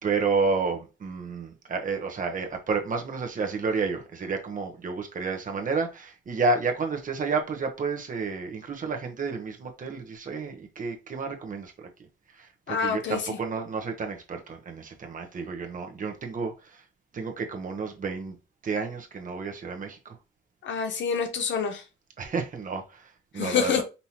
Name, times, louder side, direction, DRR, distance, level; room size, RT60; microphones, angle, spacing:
voice 1, 0.0-11.9 12.3-16.8 17.1-18.4 18.6-20.2 22.2-23.8, right 4 dB, 40° right, 1.0 m, -30 dB
voice 2, 12.7-13.4 20.6-21.8 23.3-23.8, left 7 dB, 70° left, 0.9 m, -27 dB
5.4 x 2.9 x 2.9 m
cardioid pair, 90°, 20 cm